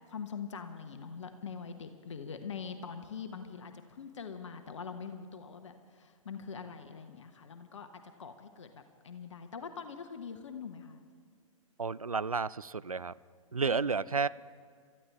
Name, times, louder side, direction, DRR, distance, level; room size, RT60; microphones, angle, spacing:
voice 1, 0.1-11.0 13.6-14.2, left 6 dB, 60° left, 7 dB, 1.1 m, -44 dB
voice 2, 11.8-13.1 13.5-14.3, right 5 dB, 85° right, 18 dB, 0.4 m, -31 dB
28.0 x 13.5 x 3.5 m, 2.1 s
figure-of-eight pair, 110°, 18 cm